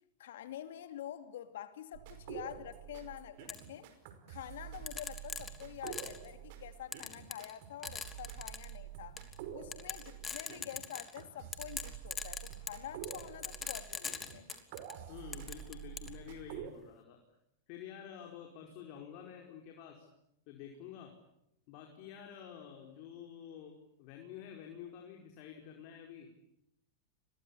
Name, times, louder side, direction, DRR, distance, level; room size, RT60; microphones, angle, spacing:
voice 1, 0.2-3.9 4.3-9.2 9.5-14.5, left 11 dB, 70° left, 2.6 m, -47 dB
sound 1, 1.9-16.7, right 10 dB, 60° right, 5.2 m, -48 dB
sound 2, 3.5-3.6 4.9-6.3 6.9-7.6 7.8-8.7 9.2-9.3 9.7-11.2 11.5-14.9 15.3-16.1, left 6 dB, 20° left, 3.1 m, -41 dB
voice 2, 15.1-17.2 17.7-20.1 20.5-21.2 21.7-26.3, left 9 dB, 55° left, 5.0 m, -49 dB
29.5 x 23.0 x 8.6 m
hypercardioid pair, 100°, 0 cm